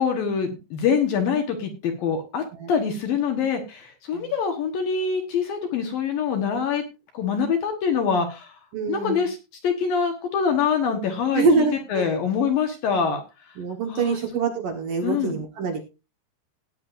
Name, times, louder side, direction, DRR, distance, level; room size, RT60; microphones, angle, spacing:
voice 1, 0.0-6.8 7.1-8.6 8.9-9.4 9.6-13.2 13.9-14.2 15.0-15.3, left 6 dB, 65° left, 4 dB, 2.7 m, -24 dB
voice 2, 8.7-9.2 11.3-12.1 13.6-15.8, right 4 dB, 60° right, 3 dB, 2.5 m, -25 dB
17.5 x 9.6 x 2.6 m, 0.28 s
omnidirectional pair, 5.3 m